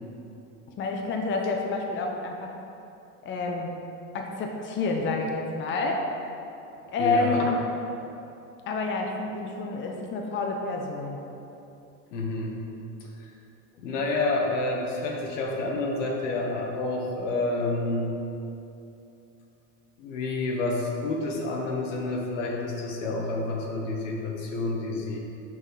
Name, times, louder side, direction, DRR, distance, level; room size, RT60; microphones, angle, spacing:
voice 1, 0.8-2.6 3.2-3.8 4.1-6.0 6.9-7.6 8.7-11.2, left 3 dB, 30° left, 1 dB, 0.7 m, -28 dB
voice 2, 7.0-7.6 12.1-12.6 13.0-13.3 13.8-18.2 20.0-25.2, left 2 dB, 80° left, -1 dB, 1.3 m, -29 dB
6.2 x 5.9 x 4.0 m, 2.8 s
supercardioid pair, 110°, 37 cm